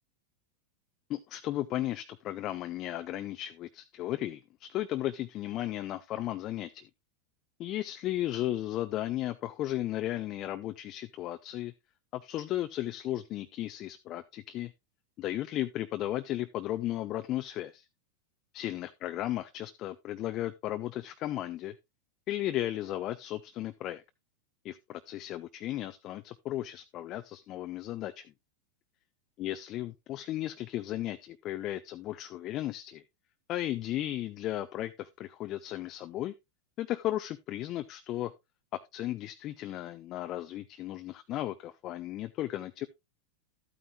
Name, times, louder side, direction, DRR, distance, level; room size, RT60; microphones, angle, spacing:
voice 1, 1.1-6.9 7.6-11.7 12.1-14.7 15.2-17.8 18.5-21.7 22.3-24.0 24.6-28.3 29.4-33.0 33.5-36.3 36.8-38.3 38.7-42.9, left 14 dB, 40° left, 0.5 m, -35 dB
12.5 x 8.9 x 2.3 m
figure-of-eight pair, 90°, 0 cm